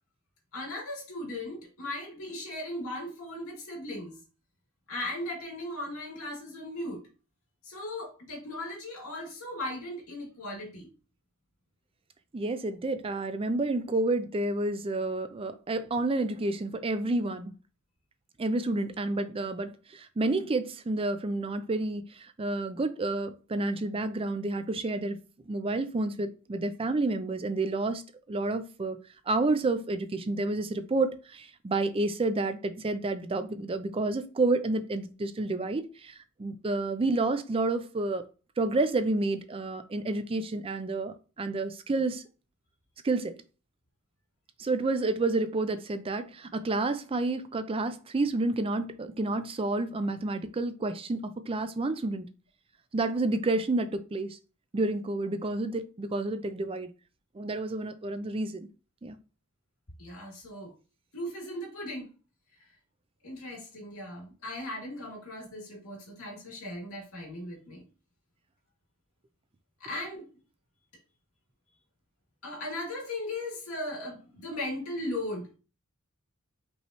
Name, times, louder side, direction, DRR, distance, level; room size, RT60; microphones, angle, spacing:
voice 1, 0.5-4.2 4.9-7.0 7.6-10.9 60.0-60.7 61.1-62.1 63.2-67.8 69.8-70.3 72.4-75.5, left 1 dB, 85° left, 2.5 m, -37 dB
voice 2, 12.3-17.5 18.4-25.2 25.5-28.0 28.3-29.0 29.3-36.1 36.4-38.2 38.6-42.2 43.0-43.4 44.6-52.3 52.9-54.4 54.7-56.9 57.3-58.7 59.0-59.2, right 2 dB, 25° right, 0.4 m, -30 dB
5.4 x 3.1 x 3.0 m
head